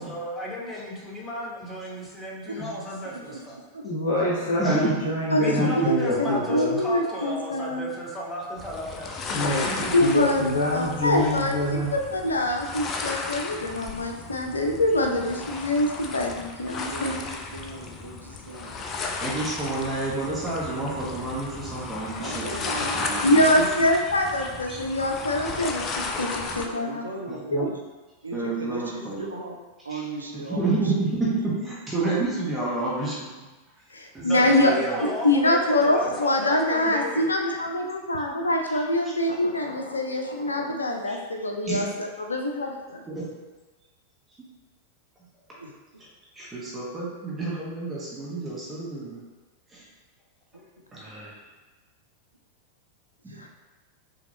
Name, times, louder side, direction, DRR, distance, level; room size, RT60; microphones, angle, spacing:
voice 1, 0.0-3.6 5.3-9.3 34.2-37.3, right 1 dB, 10° left, -4 dB, 1.1 m, -34 dB
voice 2, 3.0-3.4 3.7-3.8 16.6-18.8 22.2-23.9 26.7-27.7 28.2-29.6 29.8-31.2 34.4-35.2 45.6-45.7 53.3-53.4, right 2 dB, 80° right, 0 dB, 0.6 m, -37 dB
voice 3, 3.8-6.8 9.3-11.9 13.8-13.9, left 2 dB, 60° left, -6 dB, 1.0 m, -26 dB
voice 4, 4.6-4.9 5.6-5.7 9.6-10.1 11.2-11.3 19.2-22.5 22.9-23.7 24.4-25.0 25.6-25.9 26.5-26.7 27.3-27.7 28.3-29.2 29.9-30.0 30.3-33.5 34.1-35.0 38.7-39.1 41.1-41.2 41.6-41.9 43.1-43.3 46.3-49.2 49.7-49.8 50.9-51.3 53.2-53.4, right 3 dB, 15° right, -6 dB, 1.2 m, -30 dB
voice 5, 5.9-7.9 9.9-11.5 11.9-17.1 23.2-25.8 26.2-27.0 27.5-27.6 33.9-34.7 35.2-41.9 42.3-43.0 53.4-53.5, left 1 dB, 75° left, 2 dB, 0.5 m, -24 dB
sound 1, 8.6-26.7, left 3 dB, 30° left, 0.4 m, -34 dB
5.9 x 2.8 x 2.9 m, 1.2 s
figure-of-eight pair, 90°, 0 cm